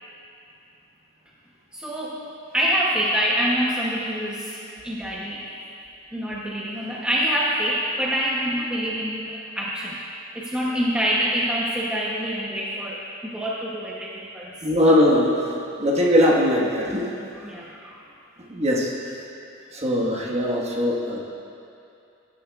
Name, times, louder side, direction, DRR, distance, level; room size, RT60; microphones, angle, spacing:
voice 1, 1.7-2.2 2.5-5.5 6.1-10.0 10.3-14.6 17.4-18.0, equal, 5° right, -6 dB, 0.7 m, -26 dB
voice 2, 14.6-15.5 15.8-17.1 18.5-19.1 19.7-21.2, left 1 dB, 30° right, -3 dB, 1.4 m, -20 dB
18.5 x 10.0 x 2.3 m, 2.6 s
head